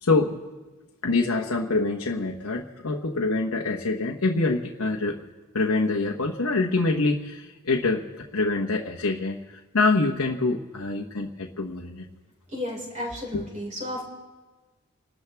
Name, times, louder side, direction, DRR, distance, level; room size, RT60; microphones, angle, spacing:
voice 1, 0.0-0.4 1.0-5.2 5.5-8.0 8.3-9.4 9.7-12.0 13.3-13.4, left 3 dB, 90° left, 0 dB, 1.2 m, -25 dB
voice 2, 12.5-14.0, left 1 dB, 35° right, -3 dB, 4.9 m, -33 dB
30.0 x 13.0 x 3.5 m, 1.2 s
head